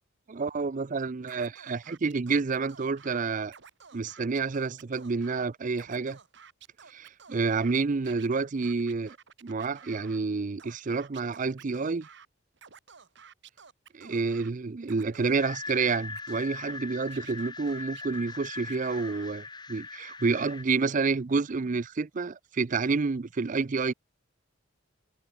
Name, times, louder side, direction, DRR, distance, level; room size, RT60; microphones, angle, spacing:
voice 1, 0.3-3.5 3.9-6.2 6.9-9.2 9.4-12.1 13.9-23.9, right 4 dB, 40° right, 0.5 m, -29 dB
Scratching (performance technique), 1.3-3.2 3.5-5.5 5.7-7.7 8.0-10.2 10.6-12.3 12.6-14.5 14.8-16.8 17.1-19.3, right 7 dB, 55° right, 1.5 m, -52 dB
sound 1, 15.4-20.6, left 4 dB, 20° left, 1.7 m, -40 dB
head